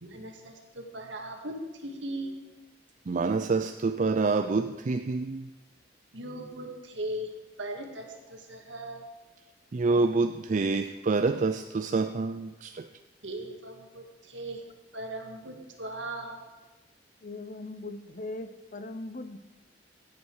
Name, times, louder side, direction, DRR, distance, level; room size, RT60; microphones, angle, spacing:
voice 1, 0.0-1.6 1.8-2.4 6.1-7.3 7.6-9.1 13.2-14.6 14.9-16.5, right 1 dB, 80° right, 3 dB, 1.9 m, -38 dB
voice 2, 3.1-5.5 9.7-12.9, right 3 dB, 40° right, 8 dB, 0.4 m, -27 dB
voice 3, 17.2-19.4, left 2 dB, 45° left, 11 dB, 0.7 m, -39 dB
17.0 x 8.6 x 4.7 m, 1.2 s
head